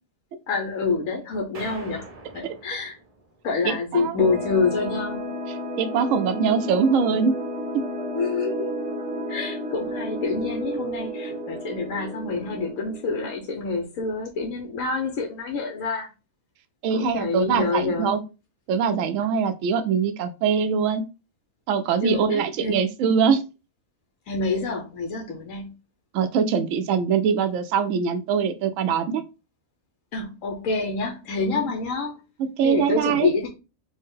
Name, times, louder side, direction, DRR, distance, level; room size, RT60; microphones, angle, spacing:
voice 1, 0.5-2.1 2.3-3.0 3.4-5.3 8.1-8.7 9.3-16.1 16.9-18.2 22.0-22.8 24.3-25.7 30.1-32.2 32.6-33.5, left 4 dB, 75° left, 1 dB, 1.2 m, -27 dB
sound 1, 1.5-3.5, right 2 dB, 35° right, 0.7 m, -42 dB
voice 2, 3.6-4.1 5.8-7.3 7.7-7.9 16.8-18.2 18.7-21.0 21.7-23.4 26.1-29.2 31.5-31.6 32.4-33.4, right 6 dB, 75° right, 8 dB, 0.9 m, -23 dB
sound 2, 4.2-13.5, equal, 10° right, 0.4 m, -32 dB
5.1 x 2.1 x 3.7 m, 0.29 s
omnidirectional pair, 1.4 m